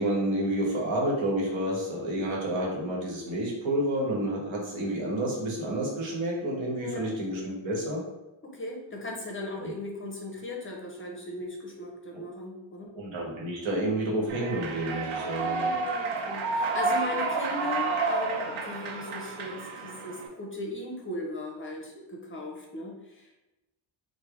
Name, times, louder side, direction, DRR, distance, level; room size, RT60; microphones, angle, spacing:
voice 1, 0.0-8.0 12.9-15.7, right 1 dB, 75° right, -2 dB, 1.1 m, -29 dB
voice 2, 6.8-7.1 8.4-12.9 15.3-23.4, left 2 dB, 25° left, -1 dB, 0.5 m, -38 dB
Human voice / Clapping / Cheering, 14.3-20.3, right 3 dB, 90° right, 0.7 m, -30 dB
3.2 x 2.1 x 3.5 m, 1.0 s
cardioid pair, 105°, 48 cm